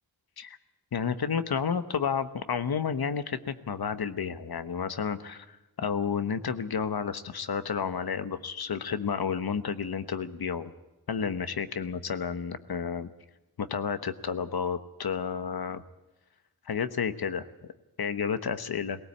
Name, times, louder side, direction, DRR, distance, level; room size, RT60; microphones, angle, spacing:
voice 1, 0.9-10.7 11.1-13.1 13.6-15.8 16.7-17.5 18.0-19.0, left 6 dB, 70° left, 12 dB, 1.2 m, -31 dB
19.0 x 18.0 x 8.6 m, 1.0 s
wide cardioid pair, 70°, 38 cm